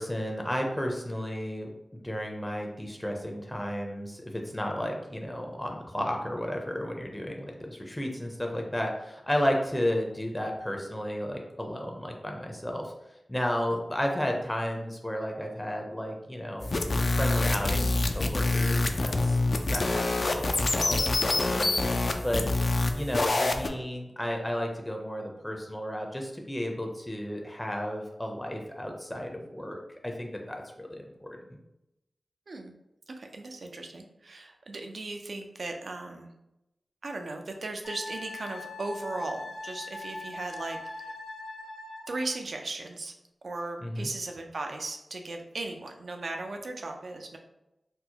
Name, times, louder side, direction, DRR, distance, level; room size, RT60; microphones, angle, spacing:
voice 1, 0.0-1.7 2.0-12.9 13.3-19.4 19.7-20.1 20.4-21.7 22.2-22.4 22.9-29.8 30.0-31.4 43.8-44.1, equal, 15° left, 1 dB, 0.5 m, -33 dB
sound 1, 16.6-23.7, left 2 dB, 60° left, 0.4 m, -26 dB
voice 2, 33.1-36.3 37.0-41.1 42.1-43.1 43.4-47.4, right 2 dB, 70° right, 4 dB, 0.5 m, -37 dB
Wind instrument woodwind instrument, 37.8-42.3, left 2 dB, 90° left, 1.3 m, -41 dB
4.3 x 2.0 x 2.8 m, 0.90 s
cardioid pair, 40°, 0 cm